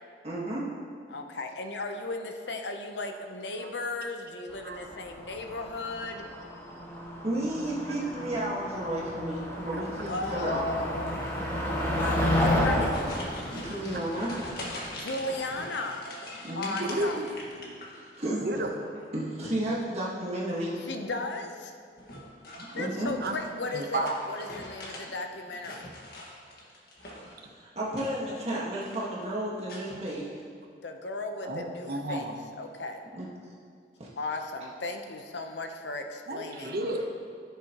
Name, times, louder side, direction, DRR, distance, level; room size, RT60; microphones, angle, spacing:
voice 1, 0.2-0.6 7.2-10.9 13.5-14.3 16.4-16.8 17.8-18.4 19.1-20.7 22.6-23.1 27.2-30.4 33.1-33.5 34.0-34.1, right 1 dB, 35° right, -5 dB, 1.6 m, -33 dB
voice 2, 1.1-6.2 10.1-11.4 11.9-13.1 14.9-16.1 16.5-17.2 20.8-21.7 22.7-25.9 30.8-33.0 34.2-36.8, left 2 dB, 80° left, 5 dB, 0.8 m, -36 dB
Motor vehicle (road), 4.6-14.9, left 1 dB, 15° left, 1.5 m, -31 dB
sound 1, 12.4-18.3 18.6-19.2 20.6-21.0 22.0-25.1 25.4-27.4 27.9-28.5 28.7-29.2 29.7-30.1, left 1 dB, 60° left, 1.7 m, -43 dB
voice 3, 16.8-17.3 18.3-19.0 23.2-23.4 23.7-24.1 31.4-32.4 36.3-37.1, right 2 dB, 60° right, 3 dB, 1.0 m, -32 dB
15.5 x 6.9 x 3.0 m, 2.3 s
head